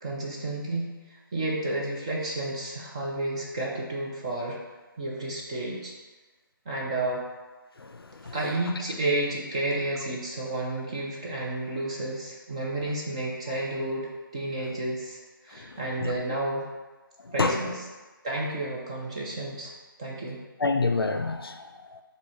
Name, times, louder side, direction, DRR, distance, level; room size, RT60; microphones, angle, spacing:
voice 1, 0.0-4.6 5.0-5.9 6.7-7.2 8.3-15.2 15.4-16.6 17.3-17.8 18.2-19.7 20.0-20.4, right 2 dB, 15° right, -3 dB, 0.3 m, -31 dB
voice 2, 7.8-8.4 15.7-16.2 17.2-17.6 20.6-22.0, left 3 dB, 85° left, 7 dB, 0.5 m, -29 dB
4.8 x 2.7 x 4.1 m, 1.2 s
figure-of-eight pair, 155°, 12 cm